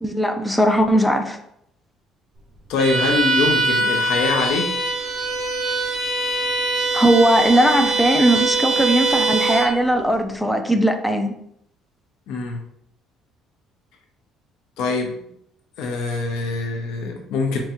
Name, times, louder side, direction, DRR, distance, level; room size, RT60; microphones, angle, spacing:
voice 1, 0.0-1.4 6.9-11.3, right 1 dB, 5° left, 5 dB, 0.3 m, -18 dB
voice 2, 2.7-4.7 12.3-12.6 14.8-15.3 15.8-17.6, left 3 dB, 75° left, 3 dB, 0.6 m, -23 dB
Bowed string instrument, 2.8-9.8, right 3 dB, 35° right, 0.7 m, -22 dB
3.5 x 3.1 x 2.9 m, 0.72 s
cardioid pair, 160°, 0 cm